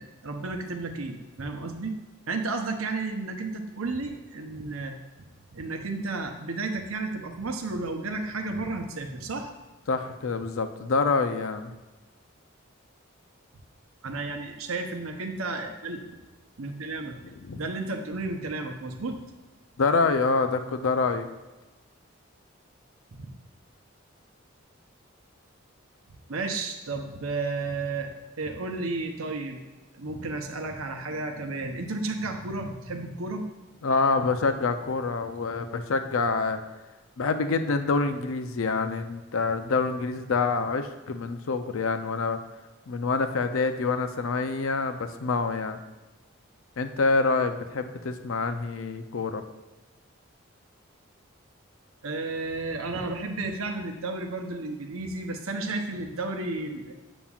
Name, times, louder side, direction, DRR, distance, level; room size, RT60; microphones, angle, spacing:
voice 1, 0.0-2.0 2.3-5.0 5.5-9.5 14.0-16.0 16.6-17.2 17.6-19.2 23.1-23.3 26.3-28.1 28.4-29.6 29.9-33.5 52.0-56.9, right 3 dB, 90° right, 4 dB, 0.8 m, -32 dB
voice 2, 9.9-11.7 17.4-17.6 19.8-21.3 33.8-36.6 37.2-42.4 42.9-45.8 46.8-49.4, left 4 dB, 80° left, 8 dB, 0.5 m, -26 dB
7.2 x 7.0 x 2.4 m, 1.2 s
head